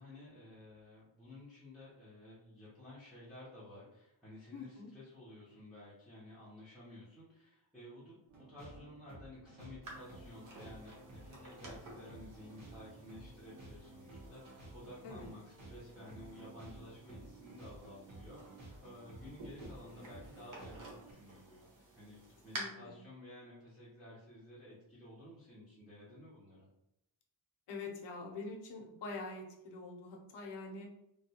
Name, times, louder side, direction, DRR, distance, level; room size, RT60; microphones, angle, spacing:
voice 1, 0.0-8.2 8.5-26.7, left 1 dB, ahead, -11 dB, 0.7 m, -53 dB
voice 2, 4.5-4.9 15.0-15.3 22.6-23.1 27.7-30.9, left 3 dB, 65° left, 1 dB, 0.7 m, -45 dB
sound 1, 8.3-21.1, right 2 dB, 75° right, 1.2 m, -54 dB
sound 2, 9.8-22.6, right 2 dB, 45° right, 0.8 m, -53 dB
3.2 x 2.3 x 2.8 m, 0.84 s
wide cardioid pair, 170°, 45 cm